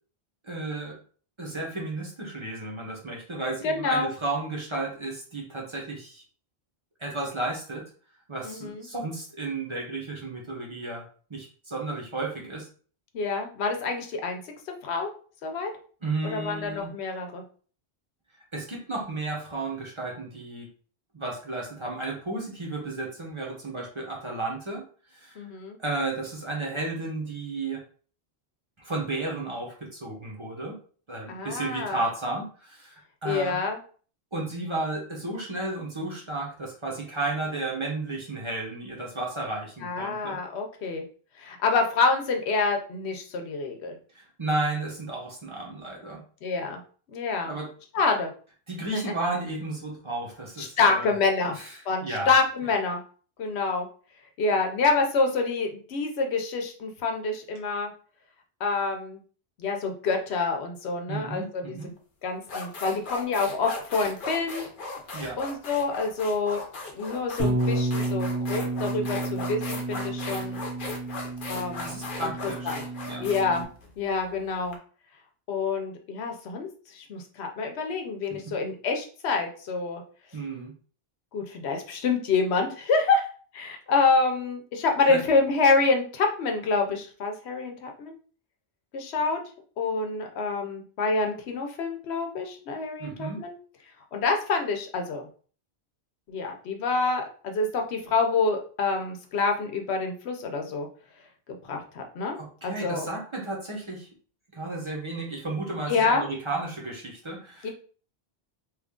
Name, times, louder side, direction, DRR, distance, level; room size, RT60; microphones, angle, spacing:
voice 1, 0.4-1.0 1.4-6.2 7.0-7.8 8.3-11.0 11.3-12.7 16.0-16.9 18.5-20.7 21.1-24.8 25.1-25.4 25.8-27.8 28.8-30.7 31.1-33.6 34.3-40.4 44.1-46.2 47.4-47.7 48.7-51.1 51.4-51.7 52.0-52.3 61.1-61.9 65.1-65.4 71.8-73.3 78.3-78.5 80.3-80.7 85.1-85.2 93.0-93.4 102.4-104.1 104.5-107.7, right 2 dB, 30° right, -2 dB, 0.8 m, -33 dB
voice 2, 3.6-4.1 8.4-8.9 13.1-14.4 14.8-15.1 15.4-15.7 16.2-17.4 25.4-25.8 31.3-32.1 33.2-33.8 39.8-41.0 41.4-44.0 46.4-46.8 47.1-47.5 47.9-48.3 50.6-51.6 51.9-53.0 53.4-53.9 54.4-57.9 58.6-59.2 59.6-61.8 62.2-64.6 65.4-66.6 66.9-70.6 71.5-72.8 73.2-73.7 74.0-74.8 75.5-80.0 81.3-83.3 83.5-88.2 88.9-89.4 89.8-93.6 94.1-95.3 96.3-100.9 101.7-102.4 102.6-103.1 105.9-106.2 107.6-107.7, left 4 dB, 85° left, 4 dB, 1.0 m, -27 dB
sound 1, 61.8-62.0 62.4-74.7, left 3 dB, 55° left, 0.8 m, -38 dB
Bass guitar, 67.4-73.6, right 1 dB, 85° right, 1.4 m, -31 dB
3.1 x 2.4 x 3.6 m, 0.42 s
omnidirectional pair, 1.1 m